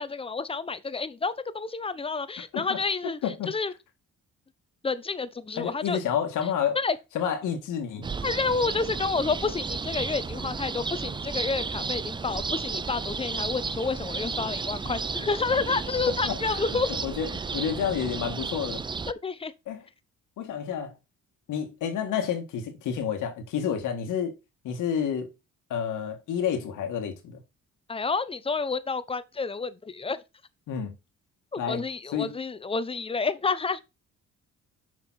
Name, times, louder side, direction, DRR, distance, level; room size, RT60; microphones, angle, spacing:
voice 1, 0.0-3.2 3.5-3.7 4.8-6.0 6.7-7.0 8.2-16.9 19.1-19.5 27.9-30.2 31.5-33.8, left 4 dB, 20° left, 0.7 m, -29 dB
voice 2, 2.4-2.8 3.0-3.5 5.6-6.8 7.1-8.1 16.1-16.4 17.0-18.8 19.7-19.8 20.4-20.9 21.5-24.4 24.6-25.3 25.7-27.4 30.7-30.9 31.6-31.8 32.1-32.3, left 8 dB, 85° left, 2.0 m, -29 dB
sound 1, 8.0-19.1, right 4 dB, 15° right, 0.3 m, -33 dB
7.2 x 5.1 x 4.2 m
cardioid pair, 90°, 30 cm